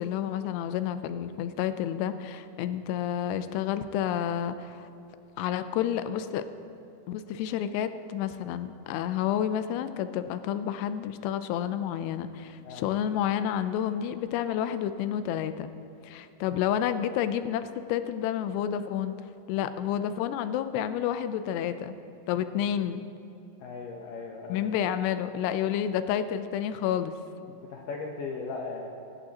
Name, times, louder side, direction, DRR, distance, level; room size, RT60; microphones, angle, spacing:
voice 1, 0.0-4.9 5.4-6.4 7.1-15.7 16.0-19.2 19.5-22.0 22.3-23.0 24.5-27.1, left 10 dB, 90° left, 11 dB, 2.8 m, -30 dB
voice 2, 23.6-24.7 27.5-28.9, left 4 dB, 75° left, 0 dB, 2.1 m, -38 dB
24.5 x 11.5 x 2.9 m, 2.7 s
omnidirectional pair, 4.7 m